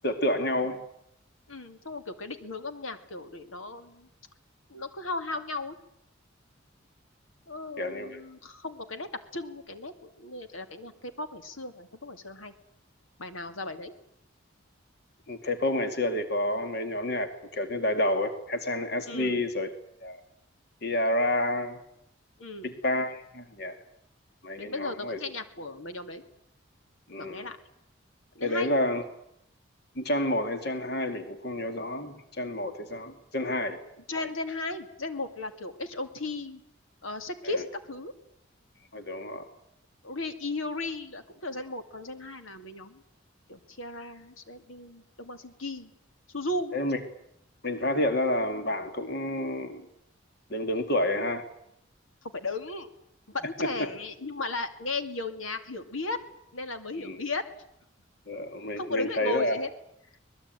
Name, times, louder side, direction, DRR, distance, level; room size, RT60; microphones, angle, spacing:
voice 1, 0.0-0.8 7.8-8.2 15.3-19.7 20.0-20.2 20.8-21.8 22.6-23.8 24.4-25.2 27.1-27.5 28.4-29.0 30.0-33.8 37.4-37.6 38.9-39.5 46.7-47.0 47.6-49.8 50.5-51.4 57.0-57.2 58.3-59.6, left 1 dB, 50° left, 8 dB, 2.4 m, -29 dB
voice 2, 1.5-4.1 4.7-5.8 7.5-12.5 13.2-13.9 19.1-19.4 22.4-22.7 24.6-26.2 27.2-27.6 28.3-28.8 34.1-36.6 37.0-38.1 40.0-43.0 43.5-45.9 46.3-46.7 52.2-52.9 53.3-56.2 56.5-57.4 58.8-59.7, left 2 dB, 85° left, 8 dB, 2.7 m, -36 dB
23.5 x 20.5 x 9.2 m, 0.76 s
head